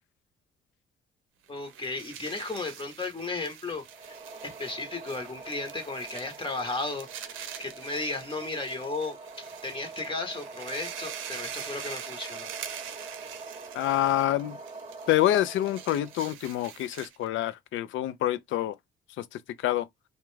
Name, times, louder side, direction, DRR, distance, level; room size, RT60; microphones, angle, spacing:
voice 1, 1.5-4.2 4.4-12.5, left 3 dB, 25° left, 0.8 m, -35 dB
sound 1, 1.5-17.3, right 9 dB, 85° right, 0.5 m, -44 dB
sound 2, 3.8-16.3, right 3 dB, 30° right, 0.8 m, -45 dB
voice 2, 13.7-14.6 15.1-18.8 19.2-19.9, left 13 dB, 75° left, 0.4 m, -27 dB
2.4 x 2.1 x 3.0 m
cardioid pair, 90°, 20 cm